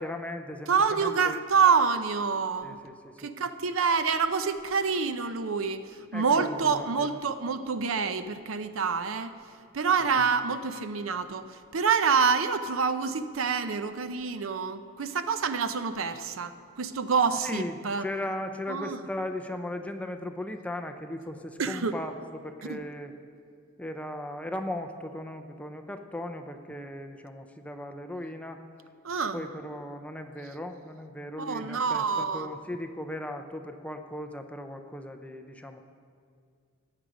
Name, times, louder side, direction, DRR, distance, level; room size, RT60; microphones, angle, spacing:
voice 1, 0.0-1.4 2.6-3.3 6.1-7.1 17.4-17.7 18.0-23.1 23.8-28.6 29.3-35.8, left 1 dB, 5° left, 6 dB, 0.6 m, -37 dB
voice 2, 0.7-2.8 3.2-9.3 9.7-18.0 18.7-19.0 21.6-21.9 22.7-22.8 29.0-29.4 31.4-32.5, right 5 dB, 85° right, 10 dB, 0.6 m, -27 dB
15.5 x 9.8 x 5.1 m, 2.2 s
head